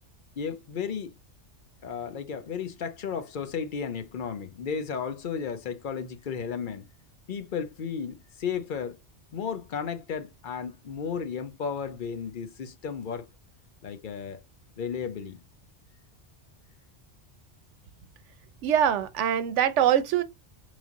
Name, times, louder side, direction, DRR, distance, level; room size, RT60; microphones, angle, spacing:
voice 1, 0.4-1.1 1.8-6.9 7.3-9.0 9.3-13.3 13.8-14.4 14.8-15.4, left 6 dB, 55° left, 0.7 m, -34 dB
voice 2, 18.6-20.2, right 10 dB, 85° right, 0.9 m, -23 dB
4.1 x 3.2 x 2.4 m
omnidirectional pair, 1.2 m